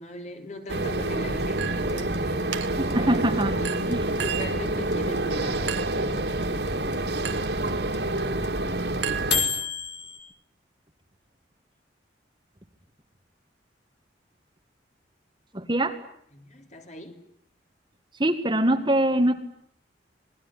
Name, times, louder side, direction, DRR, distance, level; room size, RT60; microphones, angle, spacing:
voice 1, 0.0-2.5 3.0-6.3 16.3-17.2, left 1 dB, 40° left, 5 dB, 3.6 m, -39 dB
sound 1, 0.7-9.4, right 1 dB, 65° right, 3.0 m, -28 dB
Chink clink, 1.6-2.1 2.5-3.0 3.6-4.6 5.7-6.1 7.2-7.6 9.0-9.8, right 10 dB, 80° right, 1.9 m, -34 dB
sound 2, 1.9-10.2, left 6 dB, 60° left, 4.1 m, -30 dB
voice 2, 2.8-3.5 3.9-4.0 7.7-7.8 15.5-16.0 18.2-19.3, right 1 dB, 25° right, 7 dB, 1.8 m, -23 dB
27.0 x 20.0 x 9.9 m, 0.69 s
head